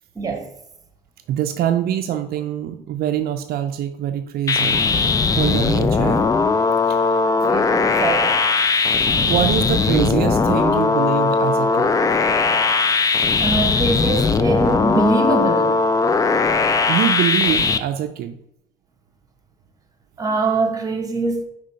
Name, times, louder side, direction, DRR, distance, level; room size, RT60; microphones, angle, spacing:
voice 1, 0.1-0.5 7.4-8.4 13.4-15.8 20.2-21.4, right 3 dB, 20° right, 1.1 m, -22 dB
voice 2, 1.3-4.8 5.3-6.3 6.9-7.3 8.7-12.0 16.9-18.4, right 10 dB, 65° right, 0.5 m, -24 dB
sound 1, 4.5-17.8, left 4 dB, 20° left, 0.4 m, -19 dB
5.1 x 3.4 x 5.5 m
cardioid pair, 110°, 17 cm